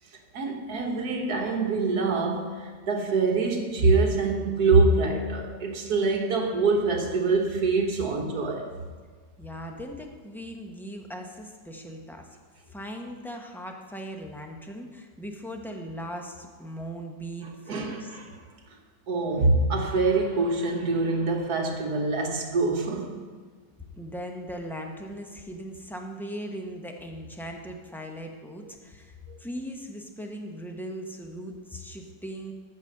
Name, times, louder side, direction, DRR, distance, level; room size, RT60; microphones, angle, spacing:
voice 1, 0.3-8.7 17.7-18.4 19.1-23.2 28.6-28.7 29.3-29.4, right 3 dB, 60° right, 1.6 m, -25 dB
voice 2, 9.4-12.3 12.7-18.1 24.0-32.5, equal, ahead, 0.5 m, -39 dB
14.0 x 5.2 x 6.6 m
omnidirectional pair, 1.9 m